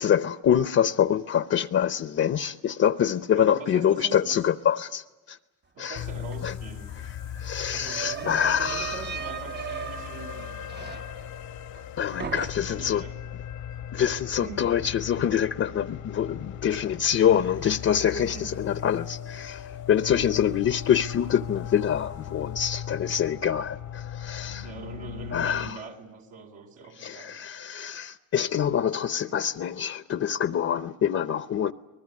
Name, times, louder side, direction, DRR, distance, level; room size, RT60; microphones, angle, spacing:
voice 1, 0.0-5.4 5.8-6.0 6.4-6.5 7.3-9.0 12.0-13.0 13.9-24.7 25.3-25.8 27.0-31.7, left 9 dB, 50° left, 0.8 m, -25 dB
voice 2, 3.3-4.4 5.7-7.0 7.7-10.5 12.2-13.2 14.4-14.7 18.0-18.7 20.2-20.4 24.6-27.4, right 4 dB, 80° right, 3.8 m, -42 dB
sound 1, 5.9-25.7, left 9 dB, 90° left, 1.5 m, -38 dB
sound 2, 6.3-6.4 6.7-11.9 12.2-12.9, right 8 dB, 35° right, 0.9 m, -38 dB
23.5 x 20.0 x 9.6 m
cardioid pair, 90°, 30 cm